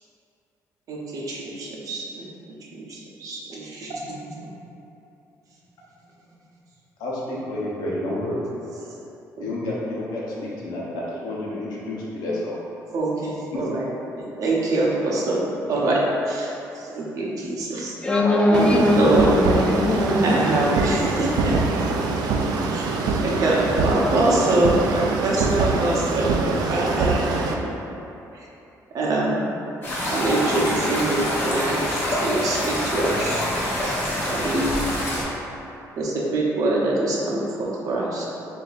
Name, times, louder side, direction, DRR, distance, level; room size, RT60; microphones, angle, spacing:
voice 1, 0.9-2.3 2.7-4.5 8.9-9.0 9.4-9.5 12.9-13.9 14.2-15.4 15.7-16.0 16.3-17.9 18.5-19.4 20.2-21.6 22.7-22.9 23.2-27.3 28.3-28.5 28.9-29.5 30.1-33.5 33.8-34.9 35.9-38.2, right 2 dB, 55° right, -4 dB, 0.7 m, -24 dB
voice 2, 7.0-8.4 9.4-12.6, left 1 dB, 85° left, -5 dB, 0.9 m, -29 dB
voice 3, 18.0-20.2, left 1 dB, 15° left, -1 dB, 0.4 m, -20 dB
sound 1, 18.5-27.5, right 4 dB, 80° right, 0.3 m, -24 dB
sound 2, 29.8-35.2, equal, 35° left, 0.8 m, -25 dB
3.3 x 2.6 x 3.9 m, 2.9 s
cardioid pair, 140°, 7 cm